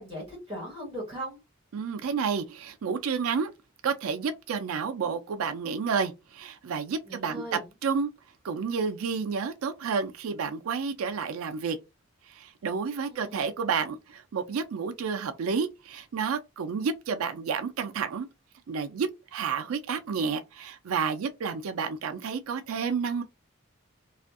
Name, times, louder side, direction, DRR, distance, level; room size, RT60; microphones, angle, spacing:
voice 1, 0.0-1.4 7.0-7.7 13.0-13.5, right 1 dB, 25° right, 1.5 m, -38 dB
voice 2, 1.7-3.5 3.8-8.1 8.4-11.8 12.3-18.3 18.7-23.2, right 5 dB, 90° right, 0.4 m, -30 dB
2.5 x 2.4 x 2.4 m
head